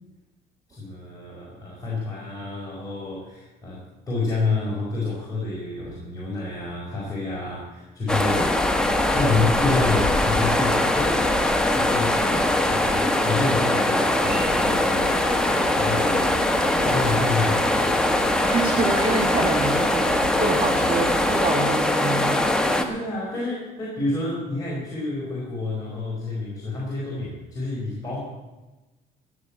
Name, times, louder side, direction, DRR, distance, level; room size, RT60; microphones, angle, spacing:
voice 1, 0.7-8.5 9.1-11.2 11.7-12.4 12.7-15.4 15.7-18.0 22.9-28.2, left 3 dB, 20° left, -6 dB, 5.1 m, -29 dB
sound 1, 8.1-22.8, left 1 dB, 5° left, 1.4 m, -22 dB
sound 2, 14.2-21.5, right 5 dB, 60° right, 2.2 m, -37 dB
voice 2, 18.4-22.5 22.7-22.9, right 3 dB, 30° right, 3 dB, 1.6 m, -27 dB
17.0 x 7.2 x 8.7 m, 1.1 s
cardioid pair, 110°, 17 cm